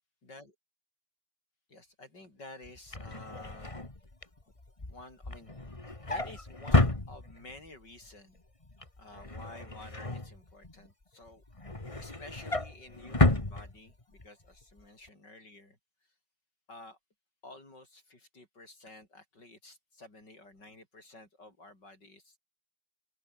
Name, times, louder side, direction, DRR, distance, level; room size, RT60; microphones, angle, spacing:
voice 1, 0.2-0.6 1.7-3.8 4.9-5.5 6.0-8.4 9.0-11.4 12.0-15.8 16.7-17.0 17.4-22.4, left 2 dB, 60° left, 8.8 m, -51 dB
Drawer open or close, 2.6-7.7 8.1-8.4 8.6-10.9 11.3-14.3 14.6-14.8 15.1-15.2, left 2 dB, 15° left, 2.3 m, -31 dB
open air
omnidirectional pair, 2.1 m